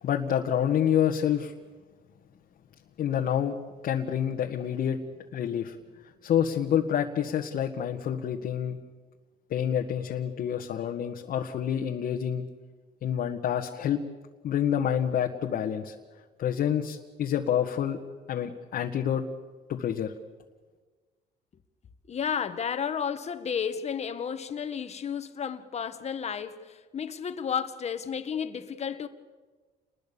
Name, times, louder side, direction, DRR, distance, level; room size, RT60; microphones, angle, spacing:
voice 1, 0.0-1.5 3.0-3.6 3.8-5.0 5.3-5.8 6.2-8.8 9.5-12.5 13.0-14.0 14.4-15.9 16.4-18.0 18.3-19.2 19.7-20.1, left 9 dB, 60° left, 1.7 m, -28 dB
voice 2, 22.1-29.1, left 7 dB, 40° left, 1.7 m, -32 dB
29.5 x 21.0 x 7.2 m
cardioid pair, 110°, 17 cm